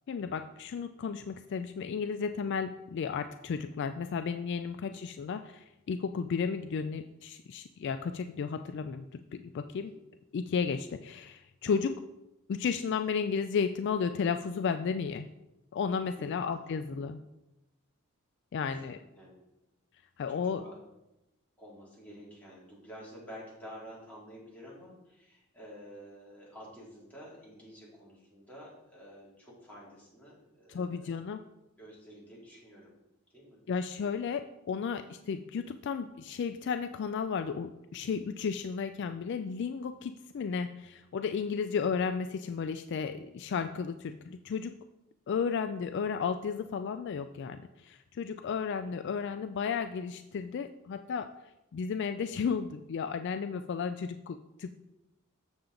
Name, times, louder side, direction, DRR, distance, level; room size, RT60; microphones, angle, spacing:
voice 1, 0.1-9.1 9.3-9.9 10.3-11.9 12.5-15.3 15.7-17.2 18.5-19.0 20.2-20.6 30.7-31.4 33.7-44.7 45.3-51.3 51.7-54.8, left 6 dB, 50° left, 9 dB, 0.3 m, -33 dB
voice 2, 16.1-17.1 18.6-19.4 20.3-20.8 21.6-31.1 31.8-32.9 33.3-33.6, equal, 5° left, -6 dB, 2.5 m, -50 dB
7.3 x 6.8 x 3.8 m, 0.94 s
head